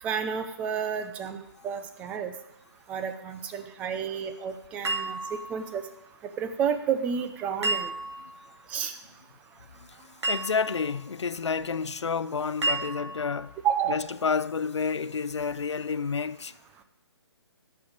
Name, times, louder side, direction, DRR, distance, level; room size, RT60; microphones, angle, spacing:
voice 1, 0.0-2.3 2.9-5.8 6.4-7.9 8.7-8.9 12.7-12.8 13.6-14.0, right 7 dB, 10° right, 0.6 m, -31 dB
sound 1, 4.8-5.8 7.6-8.4 10.2-10.9 12.6-13.4, right 2 dB, 80° right, 2.9 m, -31 dB
voice 2, 10.3-13.5 13.9-16.5, left 5 dB, 90° left, 0.7 m, -29 dB
16.0 x 7.1 x 6.4 m
hypercardioid pair, 160°, 14 cm